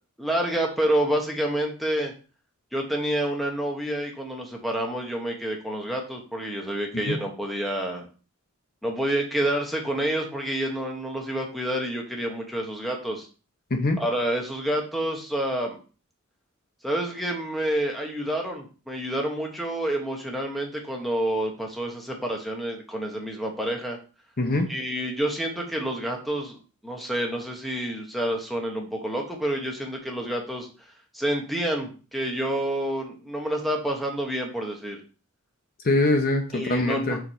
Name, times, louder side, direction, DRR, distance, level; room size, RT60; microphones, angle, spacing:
voice 1, 0.2-2.1 2.7-8.1 8.8-13.3 14.0-15.8 16.8-24.0 24.7-30.7 31.1-35.0 36.5-37.2, right 1 dB, ahead, 0 dB, 1.2 m, -28 dB
voice 2, 13.7-14.0 24.4-24.7 35.8-37.2, left 2 dB, 40° left, 4 dB, 0.9 m, -23 dB
4.7 x 4.7 x 5.6 m, 0.35 s
head